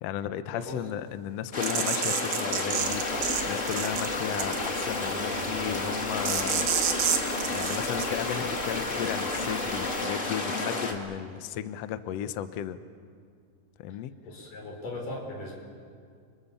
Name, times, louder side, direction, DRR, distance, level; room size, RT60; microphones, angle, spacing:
voice 1, 0.0-6.7 7.5-12.8 13.8-14.1, left 10 dB, 90° left, 11 dB, 1.4 m, -35 dB
sound 1, 1.5-10.9, left 2 dB, 25° left, 2.0 m, -31 dB
sound 2, 1.6-3.4 3.7-4.1 4.4-4.8 6.2-8.0, right 9 dB, 70° right, 3.0 m, -28 dB
sound 3, 2.8-10.0, right 1 dB, 15° right, 5.4 m, -46 dB
voice 2, 14.2-15.6, left 2 dB, 65° left, 0 dB, 7.1 m, -38 dB
30.0 x 25.0 x 7.1 m, 2.2 s
omnidirectional pair, 4.2 m